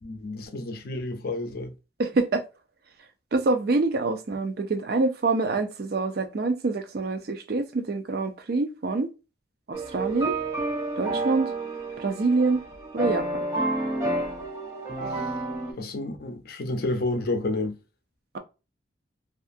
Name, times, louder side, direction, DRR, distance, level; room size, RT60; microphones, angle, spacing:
voice 1, 0.0-1.7 15.1-15.3 15.8-17.8, left 2 dB, 55° left, 0.5 m, -30 dB
voice 2, 2.0-2.4 3.3-9.1 9.7-10.4 11.0-11.5 12.0-12.6 12.9-13.3, right 3 dB, 55° right, 0.4 m, -25 dB
sound 1, 9.7-15.7, right 2 dB, 15° right, 0.7 m, -30 dB
2.6 x 2.4 x 2.4 m
head